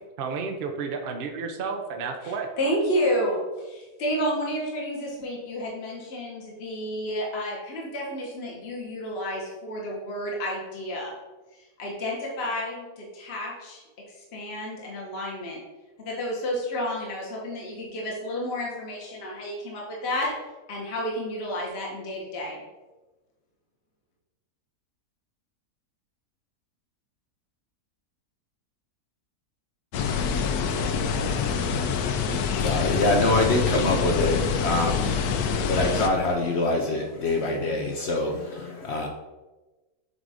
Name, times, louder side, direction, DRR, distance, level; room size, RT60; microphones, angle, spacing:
voice 1, 0.2-2.5, right 5 dB, 70° right, 4 dB, 0.5 m, -31 dB
voice 2, 2.2-11.1 11.5-13.8 14.2-15.6 16.0-20.3 20.7-22.6, equal, 45° left, -3 dB, 1.3 m, -31 dB
sound 1, 29.9-36.1, left 6 dB, 75° left, 1.1 m, -26 dB
voice 3, 32.3-39.1, left 2 dB, 60° left, 1 dB, 0.7 m, -25 dB
7.6 x 2.6 x 4.8 m, 1.2 s
omnidirectional pair, 1.7 m